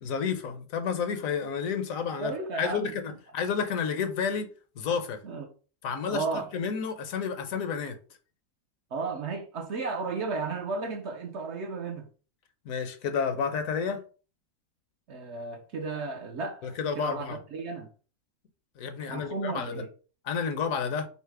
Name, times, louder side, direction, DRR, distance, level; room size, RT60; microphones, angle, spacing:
voice 1, 0.0-2.3 2.6-4.5 4.8-5.2 5.8-6.2 6.5-8.0 12.6-14.0 16.6-17.4 18.8-19.8 20.3-21.1, left 6 dB, 70° left, 1.0 m, -30 dB
voice 2, 2.2-3.0 5.2-5.5 6.1-6.5 8.9-12.1 15.1-17.9 19.1-19.9, right 4 dB, 60° right, 0.8 m, -34 dB
5.6 x 2.0 x 4.6 m
omnidirectional pair, 1.6 m